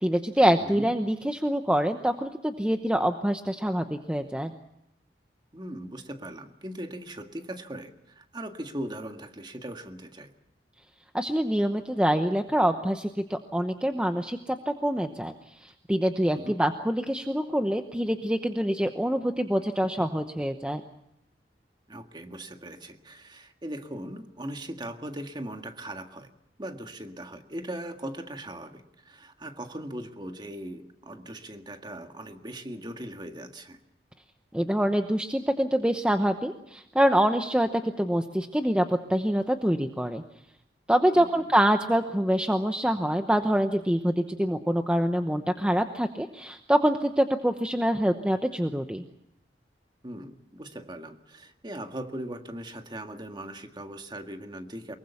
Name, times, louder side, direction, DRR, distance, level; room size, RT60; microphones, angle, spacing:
voice 1, 0.0-4.5 11.1-15.3 15.6-20.8 34.5-40.2 40.9-49.0, equal, 5° right, 6 dB, 0.9 m, -25 dB
voice 2, 0.6-0.9 5.5-10.3 16.3-16.6 21.9-26.3 26.6-33.8 41.1-41.5 50.0-55.0, right 1 dB, 25° right, 6 dB, 1.8 m, -39 dB
24.0 x 22.5 x 7.1 m, 0.78 s
head